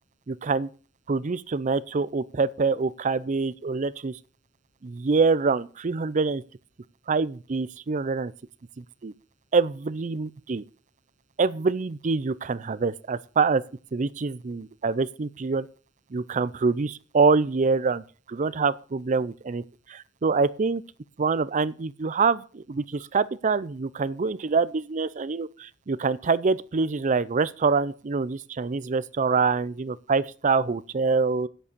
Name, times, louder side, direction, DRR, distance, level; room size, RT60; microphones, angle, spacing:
voice 1, 0.3-0.7 1.1-4.2 4.8-6.4 7.1-8.3 8.8-9.1 9.5-10.6 11.4-13.6 13.9-15.7 16.1-20.8 21.2-31.5, right 4 dB, 40° right, 0.5 m, -25 dB
9.7 x 7.8 x 6.7 m
head